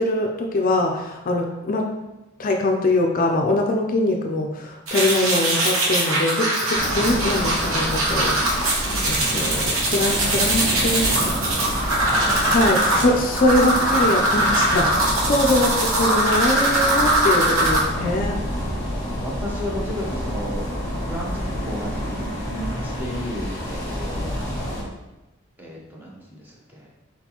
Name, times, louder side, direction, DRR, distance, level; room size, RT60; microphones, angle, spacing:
voice 1, 0.0-1.9 2.4-8.7 9.0-11.4 12.4-18.4, left 1 dB, 40° left, 2 dB, 0.4 m, -23 dB
sound 1, 4.9-17.8, right 1 dB, 85° right, 1.0 m, -21 dB
sound 2, 6.7-24.8, equal, 20° left, 1.4 m, -29 dB
voice 2, 9.2-9.7 12.1-13.2 19.2-20.7 21.0-24.9 25.6-26.9, equal, 10° right, -3 dB, 0.8 m, -33 dB
4.3 x 3.9 x 2.9 m, 1.0 s
head